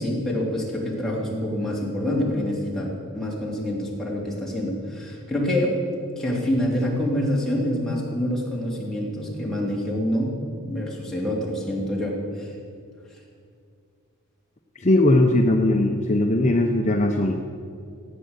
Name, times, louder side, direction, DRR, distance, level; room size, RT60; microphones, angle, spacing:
voice 1, 0.0-5.8 6.2-10.3 10.6-12.5, left 1 dB, ahead, -4 dB, 3.0 m, -26 dB
voice 2, 14.8-17.3, left 1 dB, 35° left, 2 dB, 0.8 m, -19 dB
16.0 x 9.0 x 8.2 m, 2.4 s
head